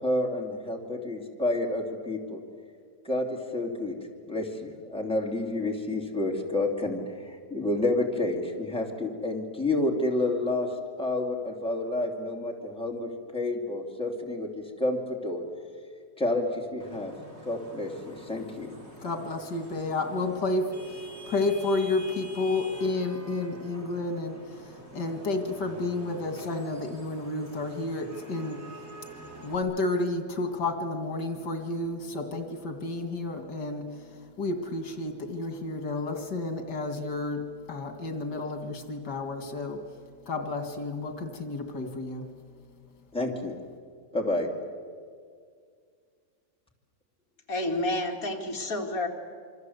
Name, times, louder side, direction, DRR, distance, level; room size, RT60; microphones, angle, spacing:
voice 1, 0.0-2.4 3.0-3.9 4.3-10.7 11.0-15.4 16.2-17.1 17.4-18.8 43.1-43.5 44.1-44.5, left 2 dB, 5° left, 0 dB, 2.8 m, -29 dB
Vehicle horn car horn honking / Traffic noise roadway noise, 16.8-29.6, right 2 dB, 40° right, 4.1 m, -46 dB
voice 2, 19.0-28.6 29.4-39.8 40.3-42.3, left 2 dB, 85° left, 7 dB, 2.5 m, -31 dB
voice 3, 47.5-49.1, left 1 dB, 55° left, 1 dB, 2.9 m, -29 dB
27.5 x 24.0 x 8.1 m, 2.1 s
omnidirectional pair, 1.8 m